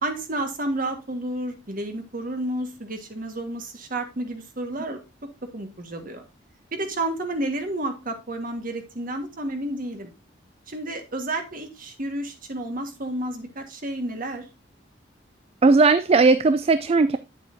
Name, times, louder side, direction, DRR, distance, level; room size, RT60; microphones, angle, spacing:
voice 1, 0.0-5.0 5.5-6.2 6.7-10.1 10.7-14.5, right 1 dB, 50° right, 5 dB, 1.6 m, -31 dB
voice 2, 15.6-17.2, right 3 dB, 35° right, 12 dB, 0.3 m, -17 dB
8.3 x 8.0 x 2.7 m, 0.27 s
head